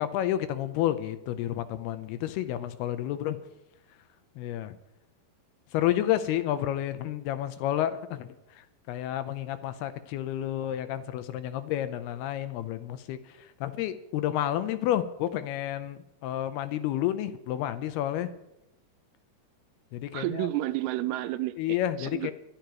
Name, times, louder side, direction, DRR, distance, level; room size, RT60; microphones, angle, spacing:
voice 1, 0.0-3.4 4.4-4.7 5.7-8.3 8.9-13.2 13.6-18.3 19.9-20.5 21.6-22.3, left 12 dB, 85° left, 11 dB, 2.7 m, -30 dB
voice 2, 20.1-22.3, right 15 dB, 80° right, 12 dB, 2.4 m, -31 dB
25.5 x 11.5 x 3.1 m, 0.90 s
omnidirectional pair, 4.6 m